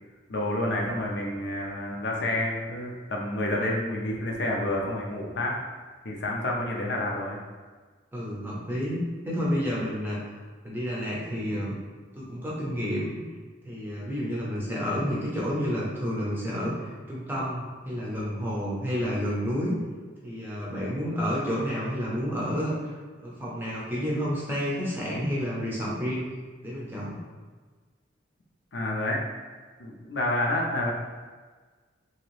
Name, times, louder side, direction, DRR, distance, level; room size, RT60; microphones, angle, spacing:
voice 1, 0.3-5.6 6.0-7.4 28.7-29.2 29.8-30.9, left 1 dB, 60° left, -1 dB, 0.5 m, -29 dB
voice 2, 8.1-10.2 10.6-11.8 12.1-13.2 13.6-19.8 20.2-22.9 23.2-26.3 26.6-27.2, equal, 10° right, -6 dB, 0.6 m, -30 dB
2.9 x 2.7 x 3.1 m, 1.4 s
head